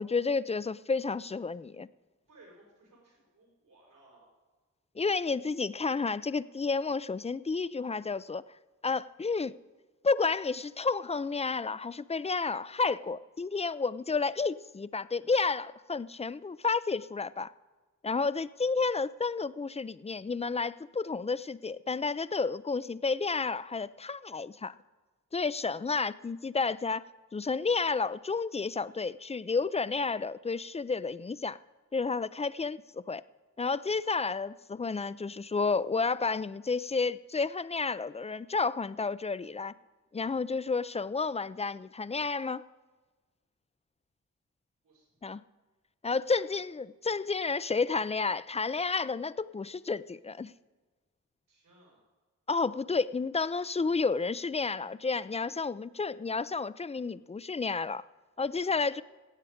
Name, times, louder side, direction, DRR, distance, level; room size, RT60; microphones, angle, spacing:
voice 1, 0.0-1.9 5.0-8.4 8.8-9.5 10.0-17.5 18.0-24.7 25.3-31.6 31.9-33.2 33.6-39.7 40.1-42.6 45.2-45.4 46.0-50.5 52.5-58.0 58.4-59.0, left 4 dB, 20° left, 17 dB, 0.4 m, -31 dB
voice 2, 2.3-4.3 44.8-45.1 46.1-46.6 51.5-52.0 58.5-59.0, right 2 dB, 85° right, -2 dB, 4.8 m, -60 dB
17.0 x 8.3 x 5.0 m, 1.3 s
cardioid pair, 75°, 31 cm